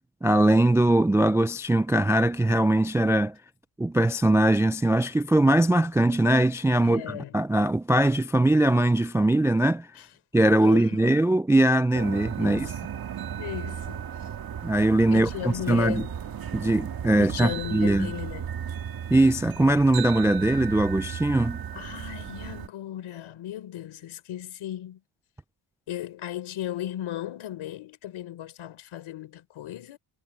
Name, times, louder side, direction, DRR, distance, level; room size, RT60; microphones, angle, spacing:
voice 1, 0.2-3.4 3.8-9.9 10.3-12.7 14.6-16.0 16.5-18.1 19.1-21.6, right 1 dB, 5° right, 0.3 m, -21 dB
voice 2, 6.8-7.3 10.0-10.1 10.6-11.2 12.4-12.8 13.4-14.3 15.1-16.2 17.2-18.5 21.7-25.0 25.9-30.0, left 12 dB, 70° left, 3.8 m, -36 dB
sound 1, 11.9-22.7, right 8 dB, 45° right, 1.6 m, -35 dB
cardioid pair, 100°, 49 cm